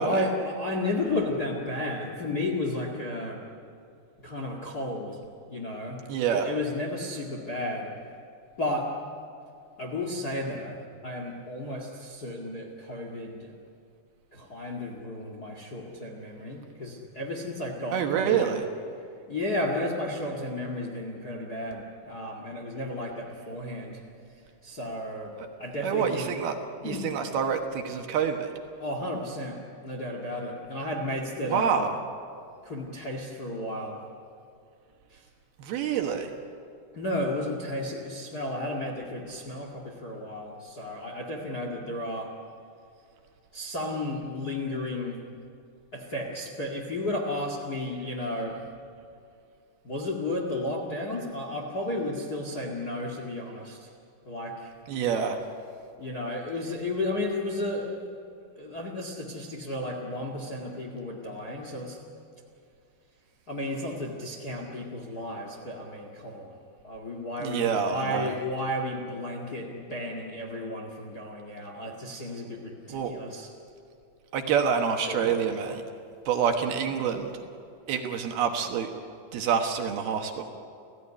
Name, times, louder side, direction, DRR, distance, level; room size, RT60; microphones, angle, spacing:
voice 1, 0.0-3.4 4.2-5.2 5.5-6.0 6.3-7.9 8.6-8.9 9.8-10.8 11.0-13.5 14.3-18.6 19.0-24.0 24.6-26.3 26.8-27.1 28.8-31.9 32.6-34.0 35.1-35.2 36.9-42.3 43.5-45.2 45.9-48.6 49.8-53.9 54.2-54.7 56.0-58.0 58.5-62.0 63.5-66.6 66.8-73.5 75.0-75.3, left 1 dB, 80° left, 1 dB, 0.8 m, -33 dB
voice 2, 6.1-6.5 17.9-18.6 25.8-26.6 26.8-28.5 31.5-31.9 35.6-36.3 54.9-55.4 67.4-68.3 72.9-73.1 74.3-75.8 76.3-77.3 77.9-78.9 79.3-80.4, right 7 dB, 65° right, 4 dB, 2.8 m, -27 dB
30.0 x 16.0 x 10.0 m, 2.5 s
omnidirectional pair, 5.6 m